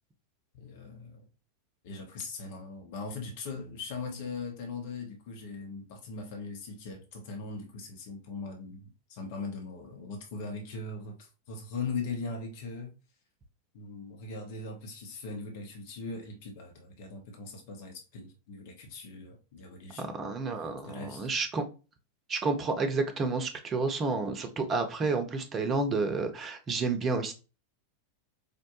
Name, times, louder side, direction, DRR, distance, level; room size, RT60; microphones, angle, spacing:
voice 1, 0.5-1.2 1.8-13.0 13.7-21.3, left 4 dB, 50° left, 0.8 m, -40 dB
voice 2, 20.0-21.6 22.3-27.3, right 3 dB, 25° right, 0.8 m, -30 dB
5.0 x 2.2 x 3.0 m
figure-of-eight pair, 90°, 0 cm